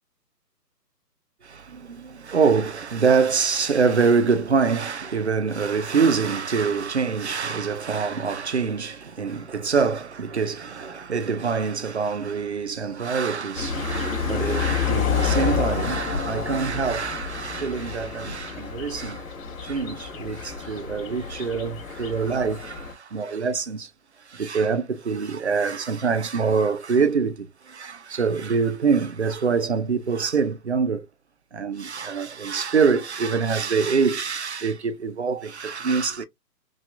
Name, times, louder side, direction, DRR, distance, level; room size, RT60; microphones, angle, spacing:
voice 1, 1.4-19.3 19.6-23.9 24.3-31.1 31.5-36.3, right 5 dB, 45° right, 0.4 m, -25 dB
sound 1, 13.5-22.9, left 6 dB, 55° left, 2.3 m, -29 dB
6.0 x 2.3 x 2.4 m
hypercardioid pair, 165°, 49 cm